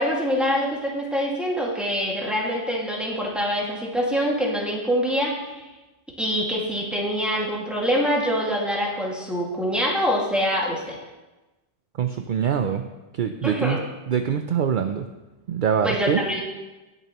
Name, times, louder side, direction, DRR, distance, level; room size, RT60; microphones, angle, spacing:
voice 1, 0.0-5.6 6.2-11.0 13.4-13.8 15.8-16.4, equal, ahead, -3 dB, 1.9 m, -25 dB
voice 2, 12.0-12.8 13.1-13.8 14.1-15.1 15.5-16.2, right 8 dB, 60° right, 7 dB, 0.6 m, -24 dB
18.5 x 6.9 x 3.0 m, 1.1 s
omnidirectional pair, 1.1 m